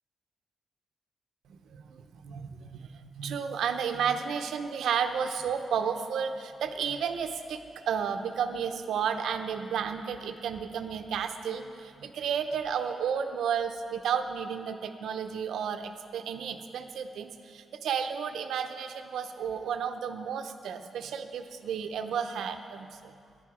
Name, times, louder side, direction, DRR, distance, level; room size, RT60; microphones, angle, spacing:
voice 1, 1.5-23.1, right 7 dB, 85° right, 8 dB, 0.7 m, -32 dB
14.5 x 10.5 x 5.0 m, 2.3 s
wide cardioid pair, 130°, 0 cm